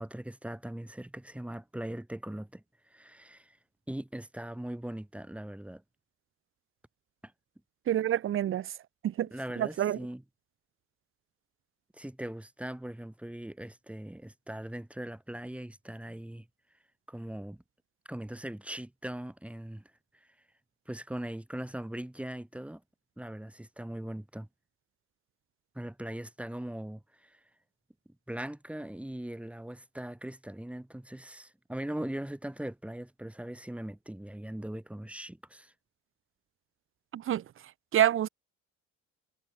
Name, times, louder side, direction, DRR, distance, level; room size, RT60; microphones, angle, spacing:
voice 1, 0.0-2.6 2.9-3.6 3.9-5.8 7.2-7.3 9.3-10.2 11.9-16.5 17.1-17.6 18.1-19.8 20.9-22.8 23.2-24.5 25.7-27.4 28.3-35.7, right 1 dB, 5° right, 3.8 m, -40 dB
voice 2, 7.9-8.7 9.0-9.3 9.6-10.0 37.1-37.4 37.9-38.3, right 11 dB, 40° right, 0.8 m, -27 dB
cardioid pair, 140°, 33 cm